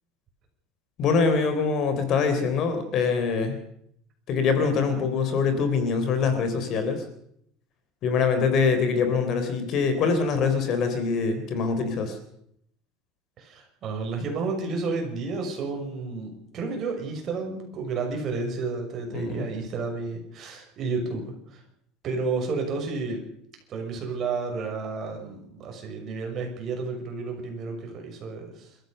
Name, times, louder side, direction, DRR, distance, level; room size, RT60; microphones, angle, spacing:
voice 1, 1.0-3.6 4.3-7.0 8.0-12.2 19.1-19.5, left 5 dB, 40° left, 8 dB, 3.7 m, -24 dB
voice 2, 13.4-21.6 22.0-23.2 23.7-28.8, right 4 dB, 35° right, 2 dB, 6.2 m, -31 dB
28.5 x 14.5 x 6.7 m, 0.72 s
cardioid pair, 165°, 0 cm